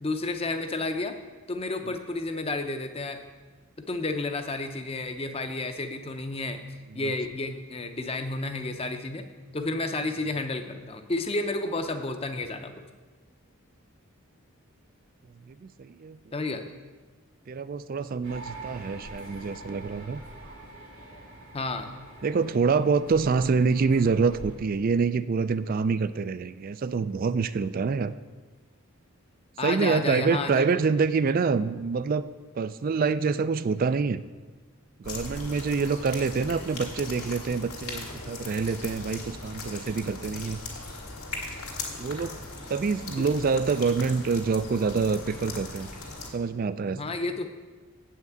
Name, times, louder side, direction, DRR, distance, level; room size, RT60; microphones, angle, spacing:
voice 1, 0.0-1.2 1.5-3.2 3.9-6.6 6.9-9.3 9.5-12.9 16.3-16.6 21.5-21.9 29.6-30.6 43.2-43.3 46.9-47.5, left 2 dB, 25° left, 7 dB, 0.6 m, -31 dB
voice 2, 15.5-16.2 17.5-20.2 22.2-28.1 29.6-32.3 32.6-34.2 35.0-40.6 42.0-42.4 42.7-45.9 46.3-47.0, right 5 dB, 40° right, 14 dB, 0.3 m, -26 dB
sound 1, 18.2-24.6, right 2 dB, 75° right, 2.6 m, -45 dB
sound 2, 35.0-46.3, left 3 dB, 85° left, 2.1 m, -39 dB
8.2 x 5.8 x 7.9 m, 1.3 s
head